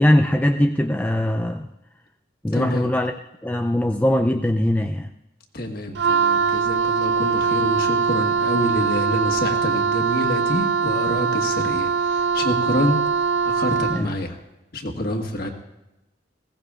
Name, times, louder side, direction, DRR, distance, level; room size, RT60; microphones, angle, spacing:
voice 1, 0.0-1.7 2.4-3.1 3.4-5.1 13.9-14.1, left 1 dB, 10° left, 4 dB, 0.4 m, -21 dB
voice 2, 2.5-2.9 5.5-13.0 13.4-14.4 14.7-15.5, left 1 dB, 50° left, 3 dB, 1.6 m, -27 dB
Wind instrument woodwind instrument, 5.9-14.1, right 5 dB, 65° right, 0.4 m, -22 dB
20.5 x 16.5 x 2.4 m, 0.95 s
head